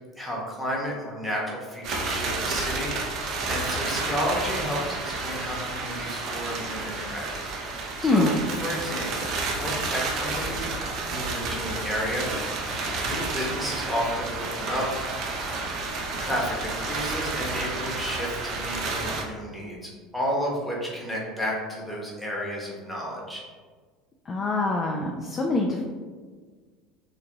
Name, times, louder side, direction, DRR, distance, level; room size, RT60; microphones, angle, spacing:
voice 1, 0.2-7.3 7.6-8.4 8.6-9.3 9.6-10.7 11.1-12.3 12.6-14.9 16.2-23.4, equal, ahead, -4 dB, 1.0 m, -32 dB
sound 1, 1.8-19.2, right 3 dB, 50° right, 0.5 m, -31 dB
voice 2, 8.0-8.3 24.3-25.8, left 2 dB, 30° left, 1 dB, 0.3 m, -24 dB
3.4 x 2.4 x 2.9 m, 1.5 s
figure-of-eight pair, 70°, 0 cm